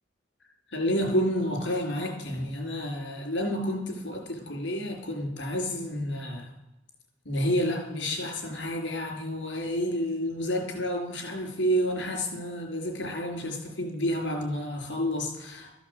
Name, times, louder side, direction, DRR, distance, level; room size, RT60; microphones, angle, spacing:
voice 1, 0.7-6.5 7.2-15.7, equal, 70° left, 2 dB, 4.9 m, -30 dB
14.0 x 7.9 x 8.2 m, 0.98 s
head